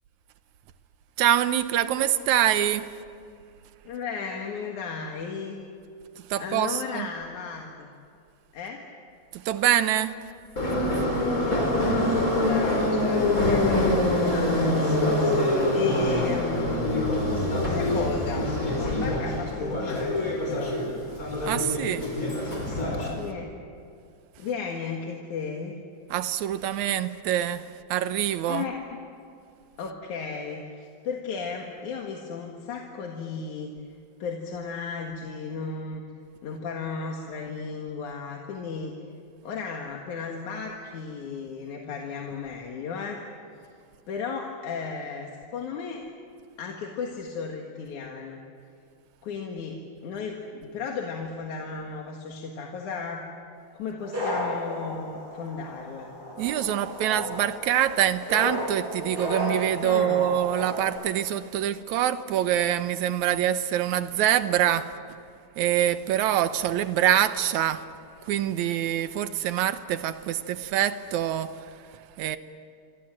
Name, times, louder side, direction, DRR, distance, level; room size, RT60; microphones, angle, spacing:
voice 1, 1.2-2.9 6.3-7.1 9.3-10.1 21.4-22.1 26.1-27.6 27.9-28.6 56.4-64.9 65.6-67.8 68.3-71.5 72.2-72.4, right 11 dB, 80° right, 2.3 m, -25 dB
voice 2, 3.8-5.6 6.4-7.9 8.5-8.9 11.2-15.2 15.7-17.1 17.5-20.8 23.2-23.5 24.4-25.8 28.5-29.0 29.8-33.7 34.2-36.0 36.4-38.9 39.4-43.2 44.1-46.0 46.6-48.4 49.2-53.3 53.8-56.1 59.8-60.2, left 5 dB, 80° left, 3.1 m, -35 dB
Subway metro underground, 10.6-23.1, left 1 dB, 25° left, 5.5 m, -25 dB
sound 1, 54.0-60.9, left 1 dB, 30° right, 8.6 m, -33 dB
28.0 x 25.0 x 7.7 m
omnidirectional pair, 3.4 m